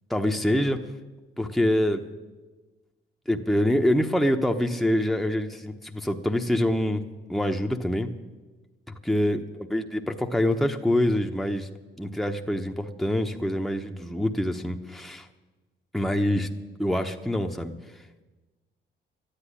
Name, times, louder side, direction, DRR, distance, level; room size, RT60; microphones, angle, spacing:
voice 1, 0.1-0.8 1.4-2.0 3.3-7.0 7.3-8.1 9.0-11.7 12.0-15.3 15.9-16.5 16.8-17.7, left 1 dB, ahead, 3 dB, 1.0 m, -25 dB
13.0 x 10.0 x 10.0 m, 1.2 s
cardioid pair, 90°, 20 cm